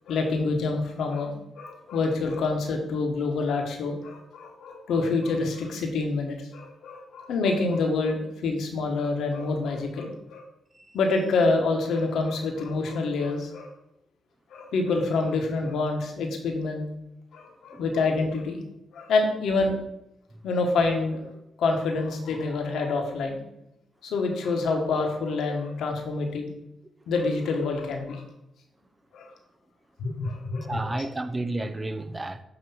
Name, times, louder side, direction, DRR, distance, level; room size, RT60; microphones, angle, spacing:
voice 1, 0.1-10.4 10.9-13.7 14.5-16.9 17.3-18.6 18.9-19.8 20.4-21.2 21.6-23.4 24.0-26.5 27.1-28.2 29.1-29.3 30.0-31.1, left 3 dB, 80° left, 1.3 m, -27 dB
voice 2, 30.7-32.4, right 2 dB, 25° right, 0.7 m, -32 dB
7.9 x 3.0 x 5.7 m
supercardioid pair, 55°, 0 cm